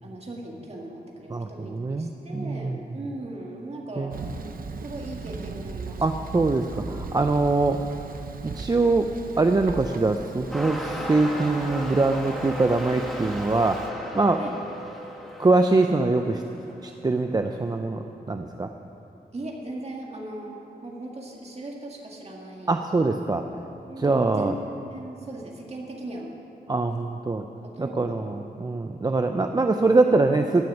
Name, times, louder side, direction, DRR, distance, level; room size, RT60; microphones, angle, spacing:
voice 1, 0.0-4.2 4.8-6.3 14.4-14.5 19.3-22.7 23.9-26.3 27.6-28.2, right 1 dB, 40° right, 0 dB, 1.9 m, -38 dB
voice 2, 1.3-2.8 4.0-4.3 6.0-7.8 8.4-9.1 9.4-13.8 14.1-14.4 15.4-16.4 16.8-18.7 22.7-23.4 24.0-24.5 26.7-27.4 27.8-30.6, right 3 dB, 25° right, 5 dB, 0.5 m, -23 dB
Thunder, 4.1-13.9, right 4 dB, 60° right, 0.7 m, -39 dB
sound 1, 10.5-16.9 17.6-17.7, equal, ahead, 1.6 m, -35 dB
16.0 x 6.4 x 9.9 m, 2.9 s
wide cardioid pair, 150°, 17 cm